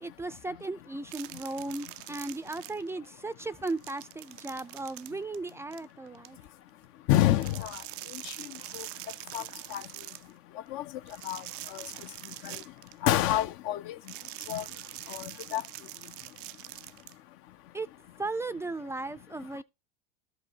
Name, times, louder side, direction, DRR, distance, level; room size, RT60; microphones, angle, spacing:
voice 1, 0.0-6.4 17.7-17.9 18.2-19.6, right 2 dB, 10° right, 0.5 m, -36 dB
sound 1, 1.1-3.1 3.4-6.3 7.3-10.3 11.1-13.4 14.0-17.1, right 19 dB, 60° right, 0.5 m, -44 dB
voice 2, 7.1-7.8 8.2-8.3 8.7-8.9 9.3-9.4 9.7-9.8 10.7-10.8 11.2-11.4 11.7-11.8 12.4-12.6 13.0-14.0 14.5-14.6 15.1-15.6, left 14 dB, 45° left, 0.6 m, -27 dB
13.5 x 5.2 x 2.8 m
hypercardioid pair, 95°, 29 cm